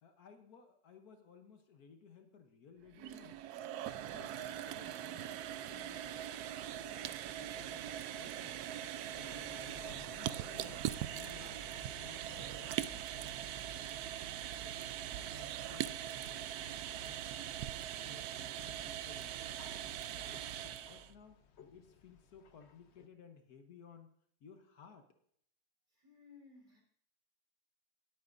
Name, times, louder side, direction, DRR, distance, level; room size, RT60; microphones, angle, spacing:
voice 1, 0.0-3.5 4.0-6.3 6.8-7.8 8.1-9.3 9.8-14.9 15.3-17.7 17.9-19.7 20.0-21.4 21.7-24.1 24.4-25.1, left 6 dB, 70° left, 6 dB, 1.5 m, -59 dB
sound 1, 2.9-21.1, right 11 dB, 75° right, 1.1 m, -41 dB
sound 2, 9.2-23.1, left 6 dB, 50° left, 0.9 m, -60 dB
voice 2, 25.9-26.8, left 4 dB, 30° right, -2 dB, 4.1 m, -59 dB
20.0 x 8.4 x 2.6 m, 0.67 s
omnidirectional pair, 1.7 m